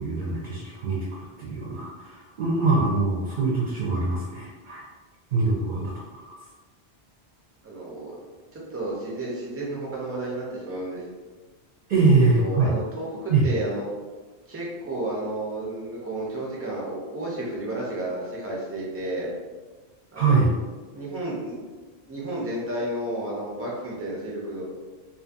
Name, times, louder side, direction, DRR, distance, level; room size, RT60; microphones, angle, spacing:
voice 1, 0.0-4.8 5.3-6.3 11.9-12.7 13.3-13.5 20.2-20.5, right 3 dB, 55° right, -4 dB, 0.6 m, -23 dB
voice 2, 7.6-8.1 8.5-11.0 11.9-13.9 14.5-19.3 20.1-20.4 20.9-21.6 22.1-24.7, right 1 dB, 20° right, -4 dB, 0.4 m, -32 dB
2.6 x 2.5 x 2.5 m, 1.3 s
omnidirectional pair, 1.1 m